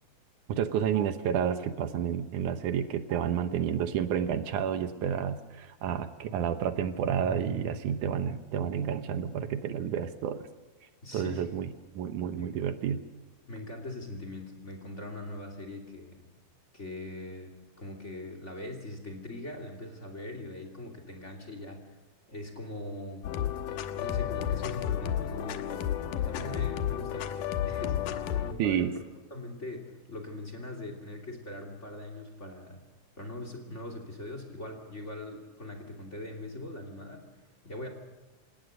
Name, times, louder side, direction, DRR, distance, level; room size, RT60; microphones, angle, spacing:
voice 1, 0.5-10.5 11.1-13.0 28.6-28.9, right 8 dB, 80° right, 10 dB, 2.5 m, -30 dB
voice 2, 11.0-11.5 12.4-12.6 13.5-16.2 16.7-21.9 22.3-23.3 24.0-28.9 29.3-32.8 33.2-37.3 37.6-37.9, left 1 dB, 25° left, 5 dB, 2.8 m, -41 dB
sound 1, 23.2-28.5, left 10 dB, 90° left, 2.7 m, -32 dB
28.0 x 17.5 x 6.6 m, 1.2 s
omnidirectional pair, 3.6 m